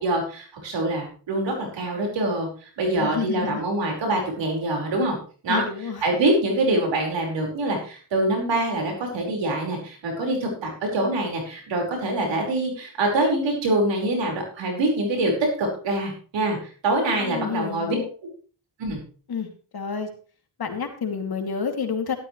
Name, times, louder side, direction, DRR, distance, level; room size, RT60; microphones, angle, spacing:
voice 1, 0.0-5.2 5.4-5.6 6.0-18.0 18.8-19.0, right 2 dB, 85° right, 1 dB, 4.9 m, -25 dB
voice 2, 3.0-3.6 5.5-6.0 17.1-18.1 19.3-19.5 19.7-20.1 20.6-22.2, left 6 dB, 60° left, 5 dB, 2.7 m, -29 dB
13.0 x 12.5 x 3.2 m, 0.39 s
cardioid pair, 70°, 43 cm